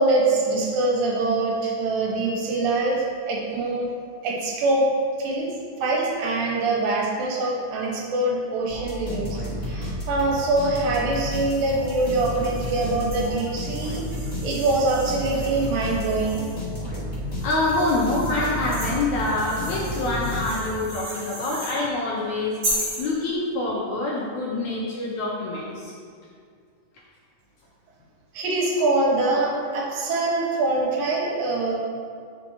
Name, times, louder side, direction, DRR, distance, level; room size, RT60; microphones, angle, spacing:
voice 1, 0.0-3.9 4.2-4.9 5.2-5.5 5.8-9.3 9.7-14.0 14.4-16.5 28.3-31.8, right 2 dB, 85° right, -3 dB, 2.8 m, -24 dB
sound 1, 8.7-20.9, equal, 45° left, 0.5 m, -32 dB
sound 2, 11.1-16.7 17.3-21.8 22.6-23.1, equal, 40° right, 2.4 m, -36 dB
voice 2, 17.4-22.6 23.0-25.9, left 2 dB, 75° left, -4 dB, 1.9 m, -26 dB
9.0 x 5.4 x 2.9 m, 2.1 s
omnidirectional pair, 4.0 m